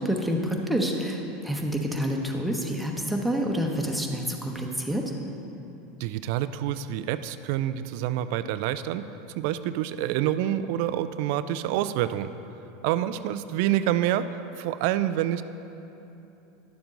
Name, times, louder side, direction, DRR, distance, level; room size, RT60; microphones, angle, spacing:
voice 1, 0.0-5.0, equal, 5° right, 0 dB, 1.1 m, -28 dB
voice 2, 6.0-12.3 12.8-15.4, right 12 dB, 65° right, 12 dB, 0.3 m, -27 dB
11.5 x 7.0 x 3.9 m, 2.9 s
hypercardioid pair, 95°, 0 cm